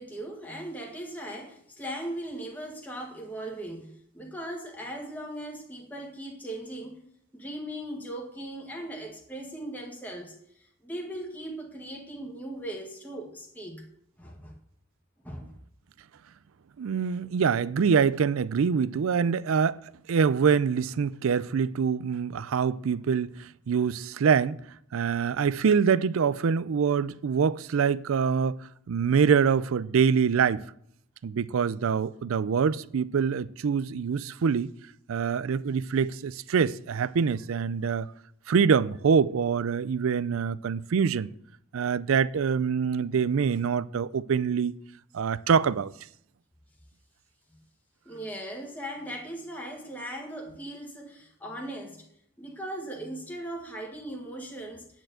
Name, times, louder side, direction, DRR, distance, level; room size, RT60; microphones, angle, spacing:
voice 1, 0.0-7.0 7.3-10.3 10.6-13.8 14.2-14.5 15.2-15.5 48.0-52.0 52.4-54.9, right 1 dB, 10° left, 1.6 m, -38 dB
voice 2, 16.8-19.8 20.1-24.6 24.9-28.6 28.9-30.7 31.2-34.7 35.1-38.1 38.5-41.3 41.7-44.7 45.1-45.9, right 6 dB, 70° right, 0.4 m, -25 dB
9.9 x 4.5 x 7.7 m
head